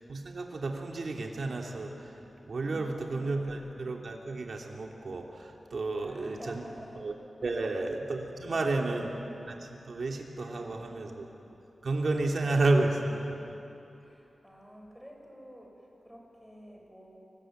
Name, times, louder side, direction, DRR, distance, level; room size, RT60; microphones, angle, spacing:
voice 1, 0.1-6.5 7.0-7.1 7.4-9.1 9.5-11.2 11.8-13.4, right 2 dB, 65° right, 1 dB, 3.1 m, -31 dB
voice 2, 2.6-3.3 5.9-7.1 7.4-7.7 8.4-8.9 10.5-11.0 12.1-12.5 14.0-17.2, equal, 5° left, 1 dB, 6.8 m, -50 dB
29.5 x 21.0 x 9.4 m, 2.9 s
wide cardioid pair, 80°, 0 cm